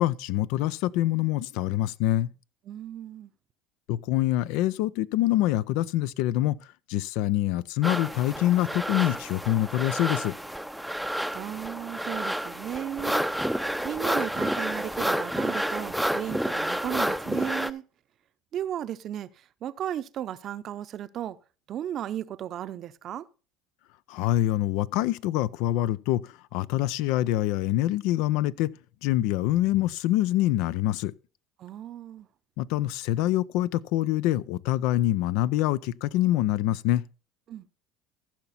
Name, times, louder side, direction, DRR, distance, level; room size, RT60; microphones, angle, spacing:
voice 1, 0.0-2.3 3.9-6.6 6.9-10.3 24.1-28.7 29.0-31.1 32.6-37.0, left 15 dB, 75° left, 0.4 m, -25 dB
voice 2, 2.7-3.3 11.3-13.5 13.8-17.8 18.5-21.4 21.7-23.3 31.6-32.3 37.5-37.7, right 10 dB, 50° right, 0.6 m, -35 dB
sound 1, 7.8-17.7, equal, ahead, 0.5 m, -30 dB
14.5 x 5.8 x 4.2 m
supercardioid pair, 85°, 0 cm